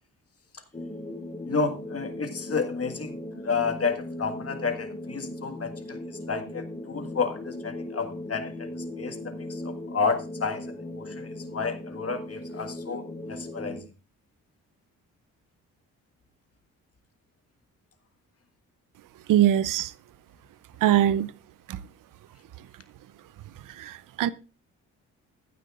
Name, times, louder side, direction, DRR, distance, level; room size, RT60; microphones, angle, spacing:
sound 1, 0.7-13.8, left 1 dB, 15° left, 3.5 m, -38 dB
voice 1, 1.5-3.2 3.4-8.7 9.0-10.6 10.9-13.0 13.3-13.8, left 5 dB, 40° left, 1.7 m, -31 dB
voice 2, 19.3-19.9 20.8-21.3 21.7-21.8 23.7-24.3, right 11 dB, 60° right, 0.6 m, -22 dB
15.0 x 9.1 x 2.4 m
hypercardioid pair, 45°, 37 cm